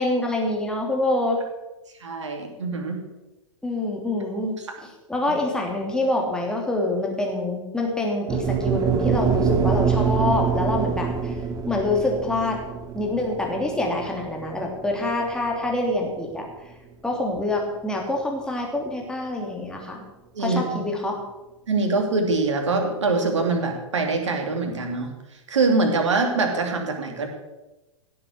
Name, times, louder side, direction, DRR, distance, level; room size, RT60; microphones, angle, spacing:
voice 1, 0.0-1.4 3.6-4.5 4.8-11.3 11.6-12.6 12.9-16.5 17.0-20.0 20.4-21.2, left 2 dB, 5° left, 0 dB, 3.0 m, -26 dB
voice 2, 2.0-3.0 4.7-4.8 20.4-20.6 21.7-25.1 25.5-27.3, right 3 dB, 65° right, 4 dB, 2.8 m, -23 dB
sound 1, 8.3-16.5, right 7 dB, 20° right, 1.2 m, -25 dB
16.5 x 7.8 x 6.3 m, 1.0 s
figure-of-eight pair, 100°, 16 cm